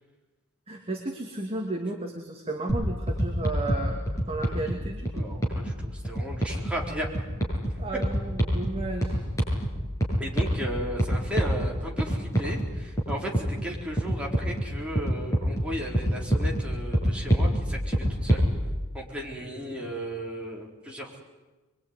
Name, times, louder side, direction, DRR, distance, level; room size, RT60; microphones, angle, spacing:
voice 1, 0.7-5.2 7.8-9.2, right 2 dB, 25° right, 1 dB, 2.4 m, -33 dB
sound 1, 2.7-18.5, equal, 15° left, 7.4 m, -28 dB
voice 2, 5.1-7.1 7.6-7.7 10.2-18.5 18.9-21.2, right 1 dB, 5° right, -2 dB, 4.3 m, -35 dB
23.5 x 23.5 x 9.7 m, 1.2 s
head